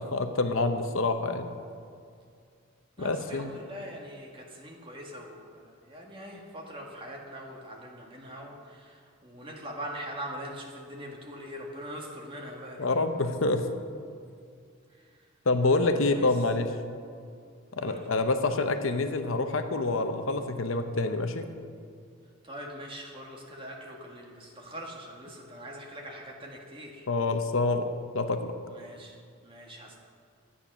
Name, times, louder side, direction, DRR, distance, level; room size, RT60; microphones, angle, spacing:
voice 1, 0.0-1.5 3.0-3.6 12.8-13.7 15.5-16.7 17.7-21.5 27.1-27.9 28.1-28.5, left 3 dB, 65° left, 7 dB, 0.8 m, -27 dB
voice 2, 3.0-12.9 15.8-16.2 17.8-18.0 22.4-27.0 28.7-29.2 29.4-30.0, equal, 25° right, -1 dB, 1.7 m, -42 dB
12.5 x 8.7 x 6.1 m, 2.2 s
head